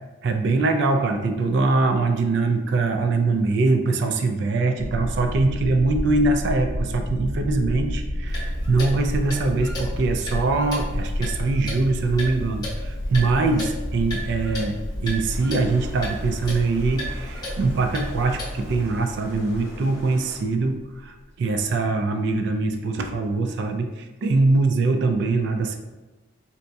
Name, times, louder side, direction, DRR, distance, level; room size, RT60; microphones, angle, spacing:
voice 1, 0.2-25.8, right 3 dB, 60° right, 6 dB, 0.3 m, -23 dB
sound 1, 4.8-21.2, equal, 90° left, 0.6 m, -31 dB
Clock, 8.3-18.8, left 1 dB, 20° left, 0.8 m, -35 dB
sound 2, 15.3-20.4, equal, 10° right, 0.6 m, -46 dB
4.1 x 2.2 x 2.6 m, 1.1 s
head